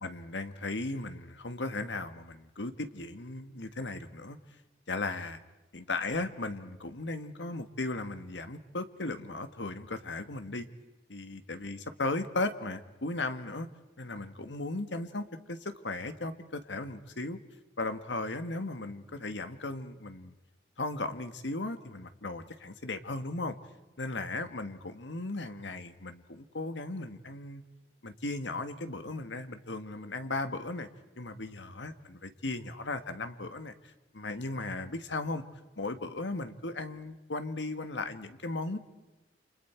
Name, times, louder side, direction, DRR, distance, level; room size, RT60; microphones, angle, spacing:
voice 1, 0.0-4.4 4.9-5.4 5.7-10.7 11.1-13.7 14.0-17.4 17.8-20.3 20.8-23.5 24.0-27.6 28.0-30.9 31.2-33.7 34.1-35.4 35.8-38.8, left 2 dB, 85° left, 9 dB, 1.6 m, -36 dB
29.5 x 27.0 x 4.6 m, 1.1 s
head